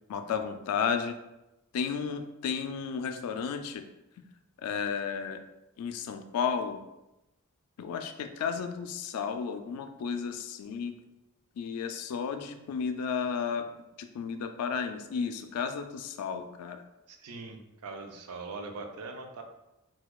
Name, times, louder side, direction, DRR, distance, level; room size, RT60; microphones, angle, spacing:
voice 1, 0.1-1.2 1.7-3.8 4.6-5.4 5.8-6.8 7.8-10.9 11.6-16.8, left 6 dB, 80° left, 7 dB, 0.3 m, -33 dB
voice 2, 17.1-19.4, right 3 dB, 75° right, 4 dB, 0.5 m, -41 dB
4.1 x 2.3 x 2.3 m, 0.94 s
head